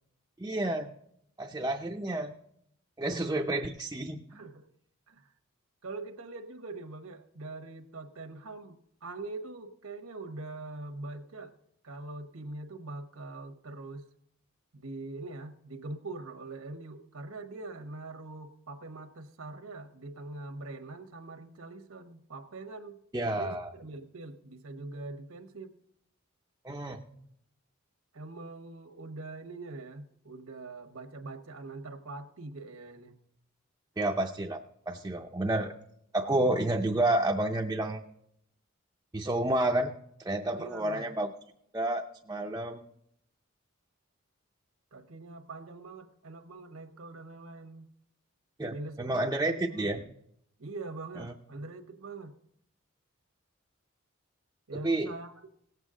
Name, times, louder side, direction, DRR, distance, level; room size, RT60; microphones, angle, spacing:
voice 1, 0.4-0.9 1.4-2.4 3.0-4.2 23.1-23.7 26.6-27.0 34.0-34.6 34.9-35.7 36.1-38.0 39.1-39.9 40.2-41.3 41.7-42.8 48.6-50.0 54.8-55.1, right 1 dB, 15° right, 1 dB, 0.4 m, -30 dB
voice 2, 4.3-4.7 5.1-5.3 5.8-11.5 11.8-14.0 14.7-23.0 23.4-25.7 28.1-33.1 40.6-41.1 44.9-47.9 48.7-50.2 50.6-52.3 54.7-55.5, right 2 dB, 85° right, 7 dB, 1.1 m, -43 dB
18.0 x 8.1 x 3.7 m, 0.72 s
head